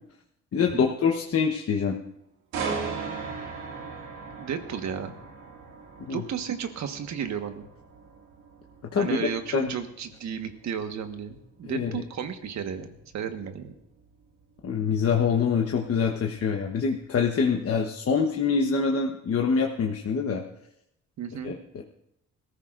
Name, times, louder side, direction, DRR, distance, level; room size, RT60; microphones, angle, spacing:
voice 1, 0.5-2.0 6.0-6.2 8.9-9.8 11.6-12.0 14.6-20.4 21.4-21.8, left 6 dB, 50° left, 1 dB, 1.2 m, -25 dB
sound 1, 2.5-16.4 16.8-17.0, right 5 dB, 90° right, 2.2 m, -39 dB
voice 2, 4.4-5.2 6.1-7.7 9.0-12.9 13.1-13.7 21.2-21.5, right 7 dB, 65° right, 6 dB, 1.5 m, -33 dB
21.0 x 14.5 x 2.6 m, 0.81 s
cardioid pair, 90°, 30 cm